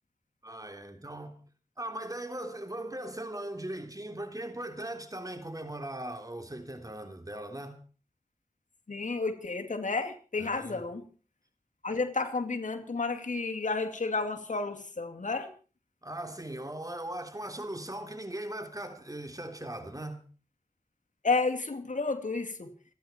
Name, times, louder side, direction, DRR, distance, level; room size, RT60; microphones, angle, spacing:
voice 1, 0.4-1.4 1.8-7.8 10.4-10.9 16.0-20.2, right 1 dB, 25° right, 3.4 m, -39 dB
voice 2, 8.9-11.0 11.8-15.5 21.2-22.7, left 3 dB, 65° left, 2.6 m, -31 dB
28.5 x 10.5 x 4.5 m
cardioid pair, 40°, 14 cm